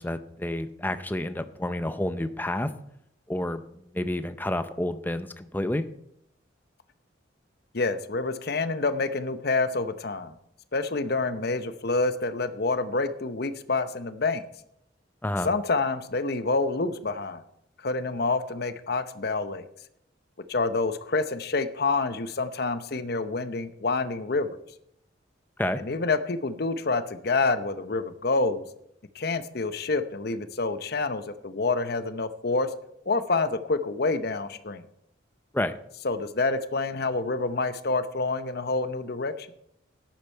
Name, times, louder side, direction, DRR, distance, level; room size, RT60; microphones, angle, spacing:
voice 1, 0.0-2.7 3.3-3.6 3.9-5.8 15.2-15.5 25.6-25.8 35.5-35.8, left 1 dB, 10° left, 10 dB, 0.6 m, -29 dB
voice 2, 7.7-10.3 10.7-14.4 15.4-17.4 17.8-19.6 20.5-24.6 25.8-28.6 29.1-32.7 33.1-34.8 36.0-39.5, left 3 dB, 55° left, 11 dB, 0.8 m, -27 dB
13.5 x 10.5 x 4.5 m, 0.76 s
head